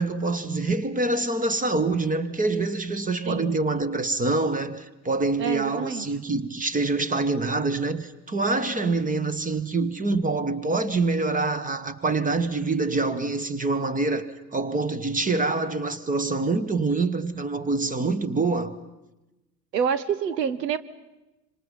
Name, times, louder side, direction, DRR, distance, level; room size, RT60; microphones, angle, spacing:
voice 1, 0.0-18.8, right 3 dB, 15° right, 1.5 m, -25 dB
voice 2, 5.4-6.1 19.7-20.8, right 7 dB, 80° right, 1.2 m, -27 dB
26.0 x 26.0 x 5.5 m
hypercardioid pair, 80°, 49 cm